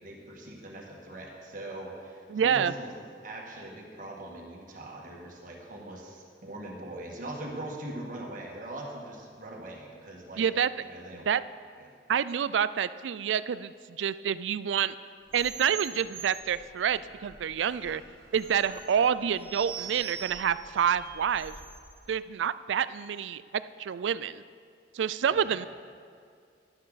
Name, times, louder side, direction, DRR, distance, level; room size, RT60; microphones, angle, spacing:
voice 1, 0.0-2.9 3.2-10.5 10.8-11.3 11.8-11.9 25.4-25.7, right 1 dB, 45° right, -1 dB, 1.8 m, -41 dB
voice 2, 2.3-2.7 10.4-10.7 11.3-11.4 12.1-13.7 14.0-14.9 15.3-18.0 18.3-21.5 22.1-24.4 24.9-25.7, right 8 dB, 90° right, 16 dB, 0.4 m, -28 dB
sound 1, 15.3-21.9, right 6 dB, 30° right, 2.5 m, -43 dB
12.0 x 11.5 x 4.1 m, 2.2 s
head